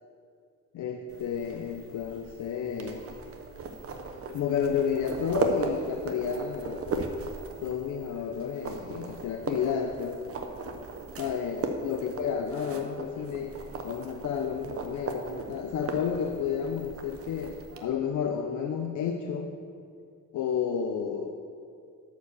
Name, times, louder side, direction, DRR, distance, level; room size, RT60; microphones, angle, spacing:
voice 1, 0.7-3.0 4.3-6.8 7.6-10.2 11.2-19.5 20.3-21.3, left 7 dB, 80° left, 4 dB, 0.7 m, -31 dB
sound 1, 1.1-17.8, right 3 dB, 50° right, 0.8 m, -37 dB
11.5 x 4.8 x 6.8 m, 2.3 s
wide cardioid pair, 175°, 30 cm